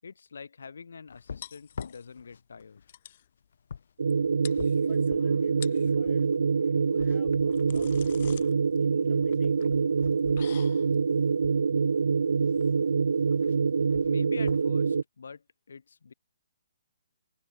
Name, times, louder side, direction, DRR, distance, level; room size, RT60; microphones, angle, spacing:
voice 1, 0.0-2.8 14.0-16.1, left 5 dB, 75° left, 7.4 m, -45 dB
sound 1, 1.1-11.6 12.5-12.9 13.2-14.7, left 6 dB, 60° left, 1.1 m, -47 dB
sound 2, 1.4-2.3 2.6-2.7 2.9-3.3 4.1-4.2 4.4-5.1 5.5-6.0 7.1-13.8, left 11 dB, 35° left, 0.7 m, -48 dB
sound 3, 4.0-15.0, right 5 dB, 80° right, 0.6 m, -25 dB
voice 2, 4.8-6.3 6.9-8.5 8.8-9.7, left 15 dB, 15° left, 1.6 m, -54 dB
hypercardioid pair, 175°, 0 cm